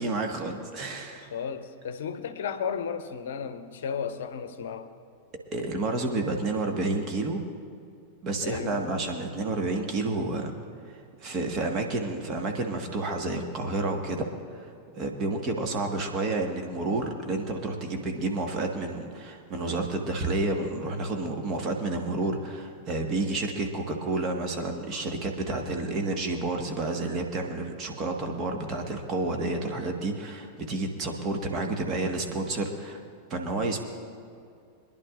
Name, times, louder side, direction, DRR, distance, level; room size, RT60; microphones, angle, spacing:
voice 1, 0.0-1.3 5.5-7.4 8.2-10.5 10.9-33.0 33.3-33.8, right 2 dB, 30° right, 3 dB, 1.6 m, -30 dB
voice 2, 1.1-4.9 8.4-9.0, left 7 dB, 60° left, 10 dB, 0.7 m, -34 dB
25.5 x 10.5 x 2.6 m, 2.4 s
figure-of-eight pair, 90°, 0 cm